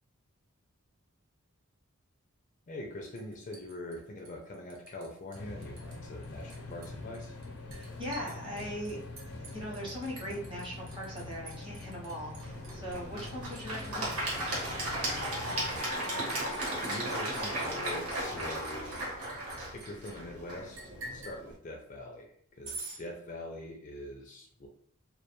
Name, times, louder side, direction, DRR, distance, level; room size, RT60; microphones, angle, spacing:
voice 1, 2.7-7.3 15.9-16.3 16.7-19.1 19.7-24.7, left 1 dB, 35° left, 1 dB, 0.3 m, -43 dB
Liquid, 3.2-5.1 5.3-6.0 6.2-20.1 20.7-21.4 22.6-23.0, right 3 dB, 75° right, 0.7 m, -48 dB
sound 1, 5.3-15.8, left 2 dB, 90° left, 0.6 m, -44 dB
voice 2, 7.7-9.0 9.4-14.2, equal, 25° right, -4 dB, 0.7 m, -40 dB
Applause / Crowd, 12.4-21.5, right 1 dB, 90° right, 1.1 m, -36 dB
2.2 x 2.2 x 2.9 m, 0.63 s
head